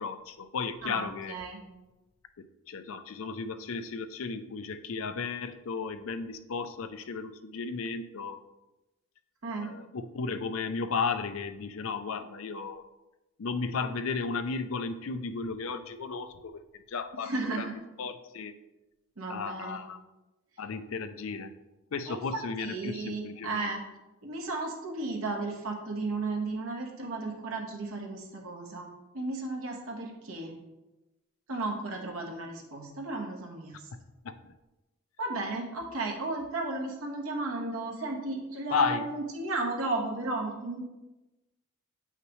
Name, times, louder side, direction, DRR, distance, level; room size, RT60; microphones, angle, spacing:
voice 1, 0.0-1.4 2.7-8.4 9.6-12.8 13.4-18.5 19.3-20.0 20.6-21.5 21.9-23.7 33.9-34.0 34.2-34.5 38.7-39.1, left 5 dB, 70° left, 10 dB, 0.5 m, -34 dB
voice 2, 0.8-1.6 9.4-9.7 17.2-17.7 19.2-19.8 22.1-23.8 24.2-30.5 31.5-33.9 35.2-40.9, right 2 dB, 80° right, 1 dB, 1.3 m, -34 dB
8.2 x 5.7 x 3.1 m, 1.0 s
head